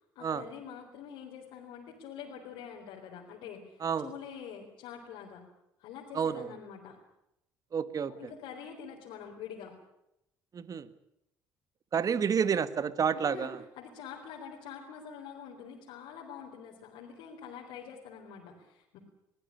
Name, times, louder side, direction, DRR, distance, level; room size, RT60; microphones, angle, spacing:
voice 1, 0.2-5.5 5.8-7.0 8.1-9.8 13.1-19.0, left 7 dB, 75° left, -2 dB, 4.1 m, -45 dB
voice 2, 6.1-6.5 7.7-8.1 10.5-10.9 11.9-13.6, right 7 dB, 45° right, 14 dB, 1.7 m, -29 dB
22.0 x 15.5 x 9.9 m, 0.83 s
supercardioid pair, 70°, 8 cm